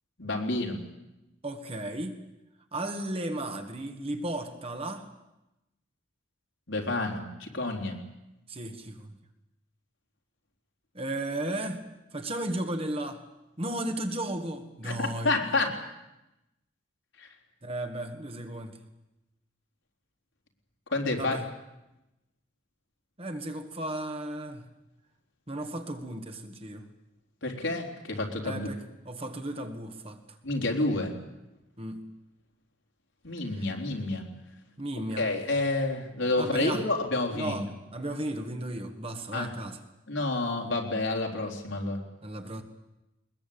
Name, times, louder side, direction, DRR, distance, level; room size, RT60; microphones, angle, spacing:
voice 1, 0.2-0.8 6.7-8.0 14.8-15.7 17.2-17.3 20.9-21.4 27.4-28.7 30.4-31.2 33.2-34.2 35.2-37.6 39.3-39.5 40.1-42.0, left 2 dB, 75° left, 2 dB, 3.9 m, -29 dB
voice 2, 1.4-2.2 2.7-5.1 8.5-9.1 10.9-11.9 12.1-13.2 13.6-15.4 17.6-18.8 21.2-21.5 23.2-24.7 25.5-26.9 28.4-30.2 31.8-32.1 33.5-33.7 34.8-35.3 36.4-36.9 37.3-39.8 42.2-42.6, right 1 dB, 30° right, 6 dB, 1.9 m, -35 dB
22.0 x 21.0 x 8.8 m, 0.95 s
head